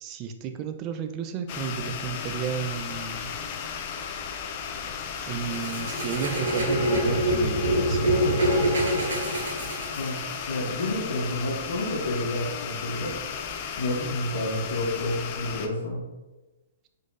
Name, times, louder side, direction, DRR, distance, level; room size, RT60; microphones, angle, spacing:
voice 1, 0.0-3.3 5.3-8.5, right 7 dB, 30° right, 7 dB, 0.3 m, -33 dB
sound 1, 1.5-15.7, left 7 dB, 40° left, 0.4 m, -35 dB
sound 2, 5.5-10.4, equal, 85° right, 1.2 m, -25 dB
voice 2, 10.5-13.2 13.8-16.0, left 1 dB, 70° left, -1 dB, 0.8 m, -30 dB
4.1 x 3.2 x 2.5 m, 1.1 s
hypercardioid pair, 145°, 0 cm